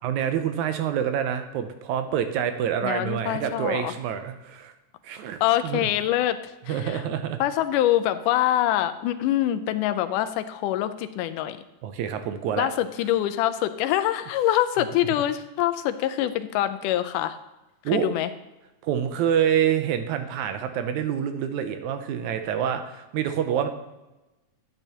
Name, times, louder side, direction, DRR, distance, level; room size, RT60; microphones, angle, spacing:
voice 1, 0.0-4.7 5.0-5.9 6.7-7.4 11.8-12.7 17.9-18.1 18.8-23.7, right 9 dB, 80° right, 8 dB, 2.0 m, -27 dB
voice 2, 2.8-3.9 5.4-7.0 7.4-11.6 12.6-17.4 17.9-18.3, left 12 dB, 85° left, 11 dB, 2.1 m, -25 dB
12.0 x 8.9 x 2.9 m, 1.0 s
omnidirectional pair, 3.7 m